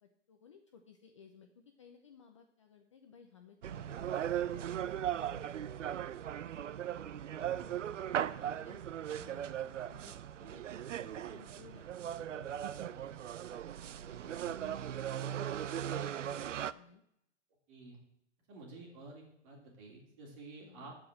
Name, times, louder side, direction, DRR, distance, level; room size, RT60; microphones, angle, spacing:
voice 1, 0.0-5.9 8.1-8.3 8.6-13.0 14.4-17.0 20.6-20.9, left 6 dB, 25° left, 5 dB, 0.6 m, -59 dB
sound 1, 3.6-16.7, right 10 dB, 90° right, 0.6 m, -38 dB
voice 2, 7.3-7.8 8.2-8.6 13.9-14.6 15.1-15.4 17.7-18.0 18.5-21.0, right 3 dB, 25° right, 0 dB, 2.9 m, -52 dB
12.5 x 5.0 x 7.5 m, 0.76 s
hypercardioid pair, 165°, 36 cm